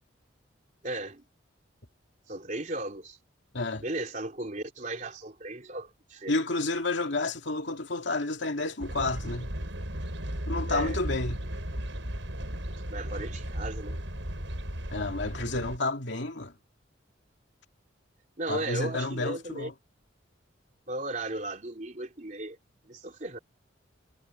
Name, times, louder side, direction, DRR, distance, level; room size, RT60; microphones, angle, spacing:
voice 1, 0.8-1.2 2.3-3.2 3.8-6.4 10.7-11.0 12.9-14.0 18.4-19.7 20.9-22.6 22.9-23.4, right 2 dB, 40° right, 3.5 m, -36 dB
voice 2, 6.3-9.5 10.5-11.4 14.9-16.5 18.5-19.7, left 2 dB, 65° left, 2.5 m, -30 dB
sound 1, 8.8-15.8, equal, 75° right, 6.6 m, -35 dB
head